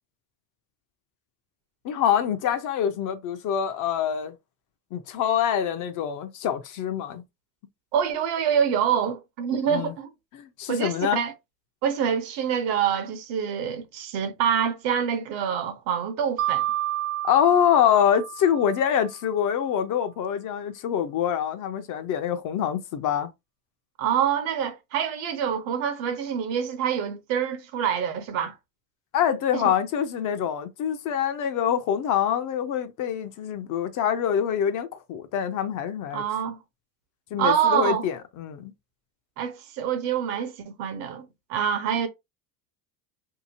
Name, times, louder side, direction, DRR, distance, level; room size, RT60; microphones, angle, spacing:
voice 1, 1.8-4.3 4.9-7.2 9.7-9.9 10.3-11.2 17.2-23.3 29.1-36.2 37.3-38.7, left 9 dB, 40° left, 0.5 m, -25 dB
voice 2, 7.9-10.1 10.7-11.3 11.8-16.6 24.0-28.6 29.5-29.7 36.1-36.6 37.4-38.1 39.4-42.1, right 8 dB, 65° right, 0.9 m, -26 dB
Mallet percussion, 16.4-19.2, right 14 dB, 50° right, 0.5 m, -30 dB
2.8 x 2.5 x 2.7 m
supercardioid pair, 100°, 48 cm